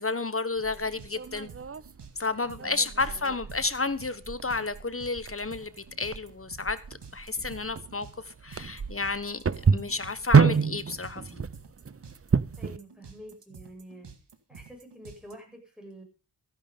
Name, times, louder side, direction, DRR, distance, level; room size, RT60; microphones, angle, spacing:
voice 1, 0.0-1.5 2.1-5.7 6.0-6.8 7.1-9.4 9.7-11.4, left 3 dB, 35° left, 1.3 m, -31 dB
sound 1, 0.6-12.8, right 5 dB, 35° right, 0.7 m, -28 dB
sound 2, 0.6-15.3, right 6 dB, 85° right, 2.1 m, -49 dB
voice 2, 12.6-14.1 14.5-16.0, equal, ahead, 7.8 m, -47 dB
14.5 x 10.5 x 5.4 m
wide cardioid pair, 70°, 41 cm